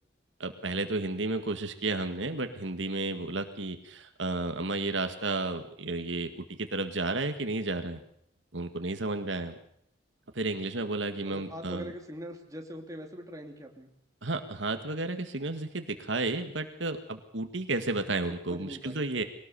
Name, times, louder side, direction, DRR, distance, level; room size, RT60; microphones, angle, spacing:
voice 1, 0.4-8.0 8.5-9.5 10.3-11.9 14.2-19.2, right 2 dB, 75° right, 7 dB, 1.9 m, -32 dB
voice 2, 11.3-13.9 18.5-19.0, equal, 15° right, 2 dB, 2.8 m, -42 dB
23.0 x 18.5 x 6.9 m, 0.69 s
head